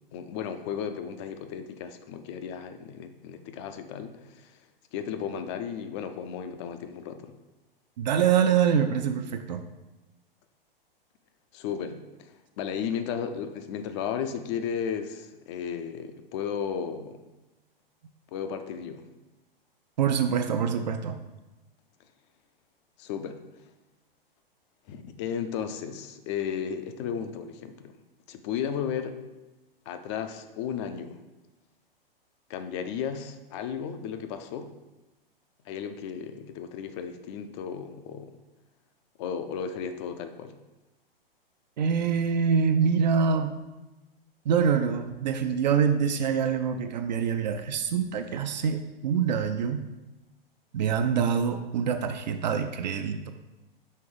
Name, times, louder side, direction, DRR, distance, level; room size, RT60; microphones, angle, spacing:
voice 1, 0.1-4.5 4.9-7.3 11.5-12.0 12.6-17.2 18.3-19.1 23.0-23.4 24.9-28.0 28.3-29.2 29.9-31.2 32.5-34.7 35.7-38.4 39.2-40.5, left 7 dB, 30° left, 8 dB, 0.5 m, -34 dB
voice 2, 8.0-9.6 20.0-21.2 41.8-43.5 44.5-49.8 50.7-53.3, right 7 dB, 50° right, 7 dB, 0.5 m, -25 dB
5.6 x 3.8 x 4.8 m, 1.1 s
figure-of-eight pair, 105°, 29 cm